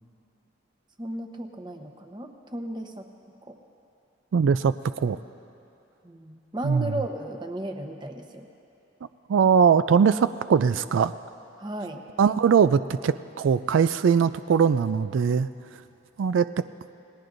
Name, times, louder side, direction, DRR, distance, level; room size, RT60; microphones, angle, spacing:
voice 1, 1.0-3.1 3.4-3.6 6.0-8.5 11.6-12.0, right 1 dB, 25° right, 4 dB, 0.9 m, -35 dB
voice 2, 4.3-5.2 6.6-6.9 9.3-11.1 12.2-15.5 16.2-16.5, right 6 dB, 90° right, 13 dB, 0.4 m, -21 dB
29.0 x 19.0 x 2.6 m, 2.9 s
head